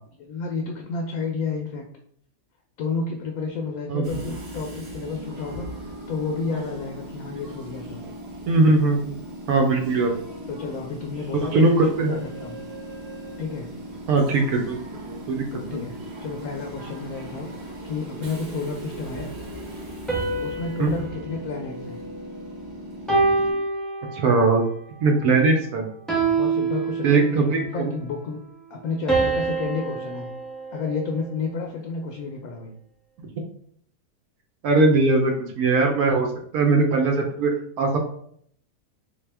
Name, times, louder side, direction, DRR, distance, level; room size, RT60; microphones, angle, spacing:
voice 1, 0.2-1.8 2.8-8.0 10.5-12.6 13.4-13.7 15.5-15.9 16.2-19.3 20.4-22.0 26.1-27.3 27.6-28.4 28.7-30.3 30.7-32.7, left 4 dB, 70° left, 2 dB, 1.0 m, -31 dB
Train / Subway metro underground, 4.0-23.5, right 1 dB, 50° right, 1.0 m, -38 dB
voice 2, 8.5-9.1 9.5-10.1 11.5-12.2 14.1-14.8 15.1-15.8 20.8-20.9 24.1-24.6 25.0-25.9 27.0-27.9 34.6-36.3 36.5-37.5 37.8-38.0, right 3 dB, 75° right, 2 dB, 1.1 m, -20 dB
sound 1, 20.1-22.5 23.1-24.5 26.1-27.5 29.1-31.4, right 4 dB, ahead, 0.4 m, -26 dB
3.5 x 2.7 x 3.3 m, 0.65 s
omnidirectional pair, 1.6 m